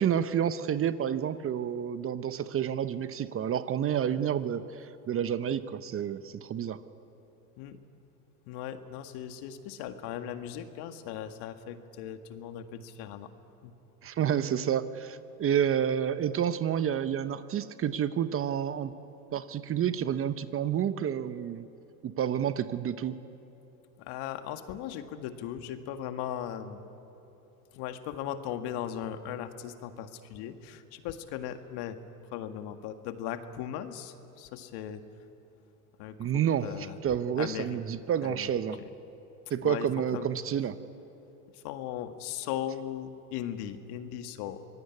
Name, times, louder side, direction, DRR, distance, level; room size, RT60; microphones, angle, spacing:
voice 1, 0.0-6.8 14.0-18.9 19.3-21.7 22.0-23.2 36.2-38.8 39.5-40.8, right 9 dB, 30° right, 12 dB, 0.9 m, -29 dB
voice 2, 8.5-13.3 13.6-13.7 24.0-26.8 27.7-32.0 32.3-35.0 36.0-37.0 37.4-37.8 38.2-38.5 38.8-38.9 39.6-40.3 41.5-44.6, left 10 dB, 55° left, 8 dB, 1.9 m, -38 dB
25.0 x 20.0 x 9.7 m, 3.0 s
hypercardioid pair, 105°, 46 cm